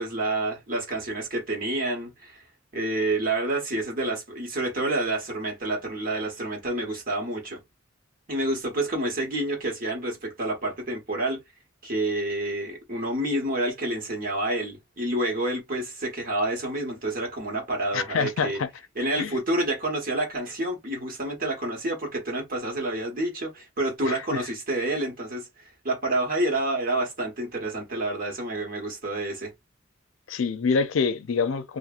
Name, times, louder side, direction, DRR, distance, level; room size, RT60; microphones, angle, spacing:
voice 1, 0.0-2.4 2.7-7.6 8.3-11.4 11.8-18.6 18.9-29.5, right 1 dB, 45° right, 1.3 m, -28 dB
voice 2, 17.9-18.7 19.2-19.3 24.0-24.4 30.3-31.8, left 5 dB, 85° left, 0.5 m, -26 dB
2.8 x 2.5 x 2.4 m
head